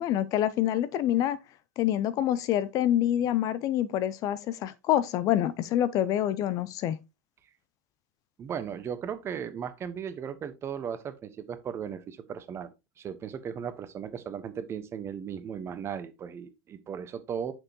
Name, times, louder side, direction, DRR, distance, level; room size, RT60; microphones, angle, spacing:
voice 1, 0.0-1.4 1.8-7.0, left 12 dB, 40° left, 0.6 m, -26 dB
voice 2, 8.4-12.7 13.0-17.5, right 8 dB, 30° right, 1.0 m, -36 dB
6.5 x 6.2 x 2.9 m
hypercardioid pair, 90°, 9 cm